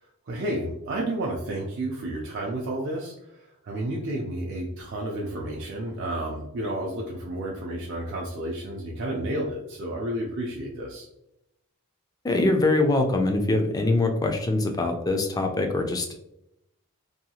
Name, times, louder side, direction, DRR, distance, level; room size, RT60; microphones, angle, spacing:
voice 1, 0.3-11.1, right 1 dB, 55° right, -2 dB, 0.4 m, -31 dB
voice 2, 12.2-16.2, left 2 dB, 15° left, 4 dB, 0.3 m, -23 dB
2.7 x 2.3 x 2.7 m, 0.83 s
head